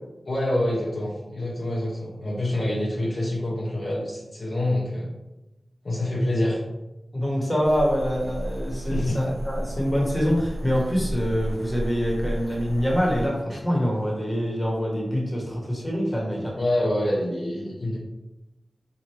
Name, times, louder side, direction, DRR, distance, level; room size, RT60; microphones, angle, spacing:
voice 1, 0.3-5.1 5.8-6.6 8.8-9.2 16.6-18.0, left 1 dB, 55° left, -4 dB, 0.7 m, -26 dB
voice 2, 7.1-16.5, equal, 20° left, -3 dB, 1.3 m, -25 dB
sound 1, 7.6-13.3, equal, 70° right, 0.8 m, -33 dB
4.3 x 2.5 x 3.1 m, 0.99 s
wide cardioid pair, 65°, 0 cm